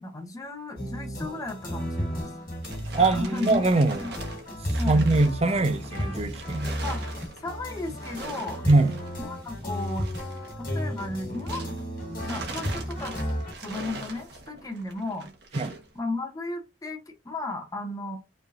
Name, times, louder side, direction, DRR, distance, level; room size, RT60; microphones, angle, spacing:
voice 1, 0.0-2.3 3.0-4.1 4.8-5.0 6.8-7.1 7.4-8.6 9.2-10.1 10.6-11.8 12.3-13.2 13.6-15.3 15.9-18.2, left 2 dB, 20° left, 0.7 m, -34 dB
sound 1, 0.8-13.5, equal, 50° left, 1.4 m, -33 dB
sound 2, 2.3-11.9 12.2-15.9, right 2 dB, 60° right, 1.1 m, -42 dB
voice 2, 2.9-4.0 4.9-6.7 8.7-8.9 15.5-15.7, right 2 dB, 35° right, 0.5 m, -22 dB
5.1 x 3.3 x 2.4 m
head